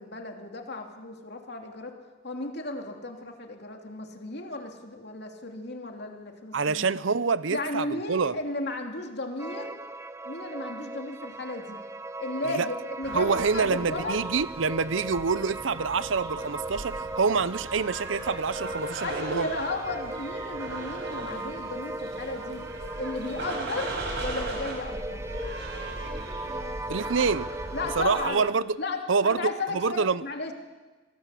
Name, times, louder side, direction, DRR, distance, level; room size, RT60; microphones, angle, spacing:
voice 1, 0.0-2.0 2.2-6.9 7.5-9.8 10.2-11.8 12.2-14.2 19.0-22.6 23.0-25.3 27.2-27.3 27.7-28.4 28.8-30.5, left 2 dB, 55° left, 3.0 m, -34 dB
voice 2, 6.5-8.4 12.4-12.7 13.1-19.5 26.9-27.5 28.0-28.8 29.1-30.2, right 5 dB, 75° right, 0.7 m, -26 dB
sound 1, 9.4-28.5, right 2 dB, 15° right, 0.7 m, -38 dB
sound 2, 13.0-28.2, right 2 dB, 60° right, 5.6 m, -38 dB
26.5 x 18.5 x 8.4 m
head